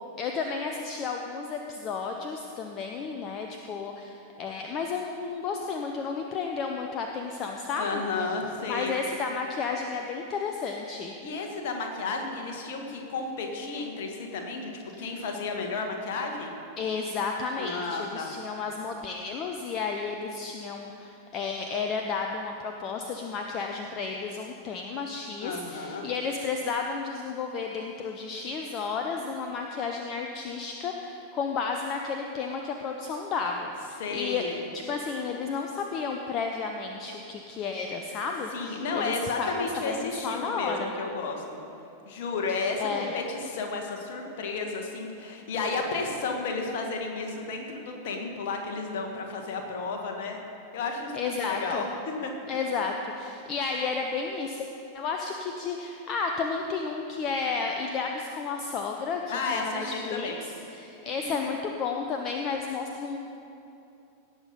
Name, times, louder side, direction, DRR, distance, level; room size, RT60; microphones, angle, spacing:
voice 1, 0.2-8.0 8.7-11.1 14.9-15.0 16.8-34.5 34.7-40.9 42.8-43.1 51.1-51.9 52.5-54.7 54.9-63.2, left 5 dB, 35° left, 3 dB, 0.7 m, -32 dB
voice 2, 7.8-8.9 11.2-14.7 15.0-16.5 17.6-18.4 25.4-26.1 34.0-34.6 38.5-41.6 42.1-50.4 50.7-52.3 59.3-60.4 61.0-61.3, left 4 dB, 50° left, 2 dB, 1.6 m, -32 dB
17.5 x 6.8 x 5.4 m, 2.8 s
figure-of-eight pair, 90°, 0 cm